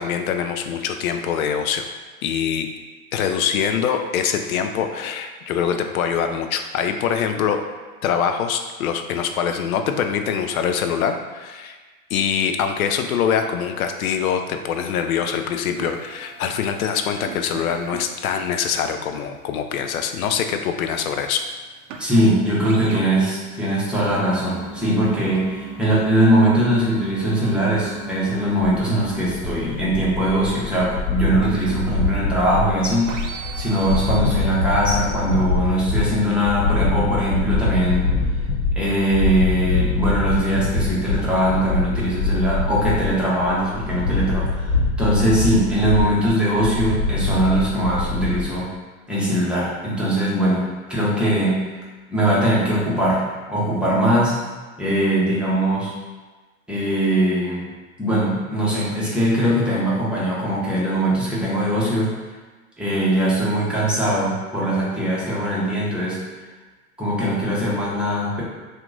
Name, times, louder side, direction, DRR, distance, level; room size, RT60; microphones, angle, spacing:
voice 1, 0.0-1.9 2.2-2.7 3.1-7.6 8.0-11.8 12.1-21.4, left 7 dB, 75° left, 6 dB, 0.5 m, -24 dB
sound 1, 14.7-15.1 15.4-32.5 33.0-34.2, right 4 dB, 65° right, 0.5 m, -38 dB
voice 2, 22.0-33.1 33.5-38.1 38.8-44.7 45.0-48.7 49.1-51.7 52.1-54.4 54.8-55.9 56.7-57.7 58.0-62.1 62.8-66.2 67.0-68.4, right 1 dB, ahead, -8 dB, 1.0 m, -21 dB
sound 2, 28.6-48.4, left 3 dB, 55° left, 1.1 m, -24 dB
2.8 x 2.5 x 3.8 m, 1.3 s
hypercardioid pair, 95°, 43 cm